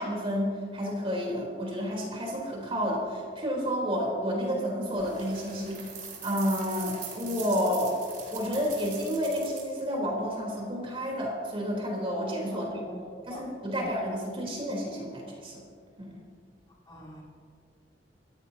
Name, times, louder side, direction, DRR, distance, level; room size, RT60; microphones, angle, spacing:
voice 1, 0.0-5.8 6.2-8.0 8.3-12.8 13.3-15.6 16.0-16.2, equal, 30° right, -2 dB, 3.7 m, -30 dB
sound 1, 4.9-9.8, right 6 dB, 50° right, 4.2 m, -42 dB
voice 2, 12.5-13.9 16.9-17.2, right 1 dB, 25° left, -5 dB, 4.1 m, -44 dB
28.5 x 15.0 x 2.9 m, 2.2 s
head